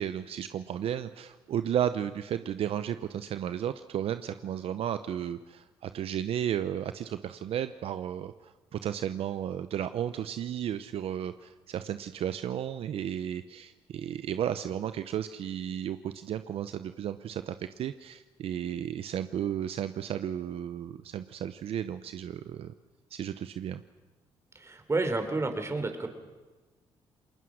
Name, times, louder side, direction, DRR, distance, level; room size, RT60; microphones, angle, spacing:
voice 1, 0.0-22.7 23.1-23.8, right 10 dB, 70° right, 11 dB, 0.8 m, -33 dB
voice 2, 24.5-26.1, right 3 dB, 25° right, 7 dB, 3.9 m, -30 dB
28.5 x 21.0 x 6.5 m, 1.2 s
cardioid pair, 75°, 10 cm